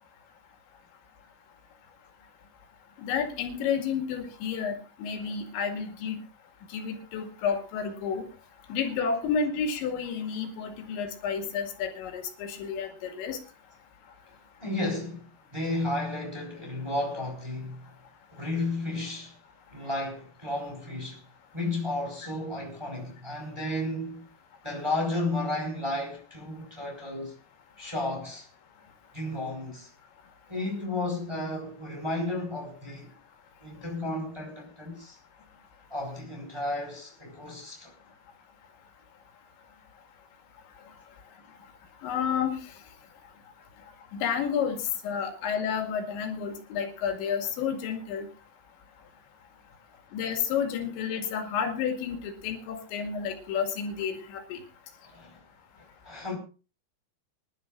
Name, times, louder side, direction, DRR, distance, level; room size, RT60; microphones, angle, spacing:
voice 1, 3.0-6.2 6.7-8.3 8.7-13.4 42.0-42.6 44.1-48.3 50.1-54.6, left 7 dB, 85° left, 4.5 m, -30 dB
voice 2, 14.6-15.3 15.5-17.9 18.3-19.4 19.7-21.2 21.5-24.3 24.6-27.3 27.8-28.5 29.1-29.9 30.5-33.2 33.6-35.2 35.9-37.9 55.0-55.4 55.8-56.4, left 2 dB, 5° right, 3.7 m, -33 dB
26.0 x 11.5 x 2.5 m
omnidirectional pair, 5.1 m